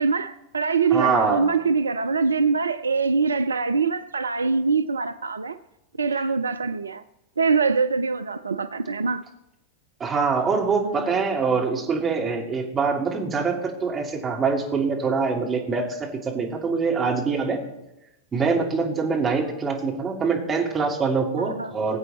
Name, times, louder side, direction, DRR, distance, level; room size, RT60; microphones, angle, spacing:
voice 1, 0.0-5.6 6.0-7.0 7.4-9.2 10.8-11.2 21.4-21.7, right 4 dB, 75° right, 0.4 m, -24 dB
voice 2, 0.9-1.5 10.0-17.6 18.3-22.0, right 5 dB, 20° right, 2.9 m, -24 dB
21.0 x 8.1 x 4.2 m
figure-of-eight pair, 90°, 0 cm